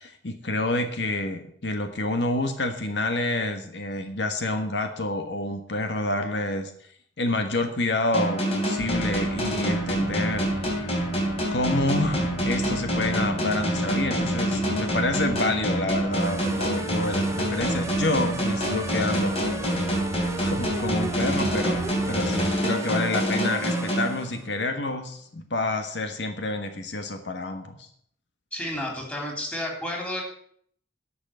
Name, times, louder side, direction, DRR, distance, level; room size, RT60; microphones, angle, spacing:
voice 1, 0.0-6.7 7.2-10.5 11.5-19.7 20.4-27.9, left 2 dB, 80° left, 6 dB, 1.4 m, -28 dB
sound 1, 8.1-24.7, equal, 35° left, 3.2 m, -27 dB
sound 2, 8.8-22.6, right 2 dB, 60° right, 0.8 m, -38 dB
sound 3, 16.1-24.4, right 2 dB, 15° right, 0.7 m, -37 dB
voice 2, 28.5-30.2, left 1 dB, 10° left, 0 dB, 3.3 m, -31 dB
11.0 x 6.1 x 8.7 m, 0.63 s
head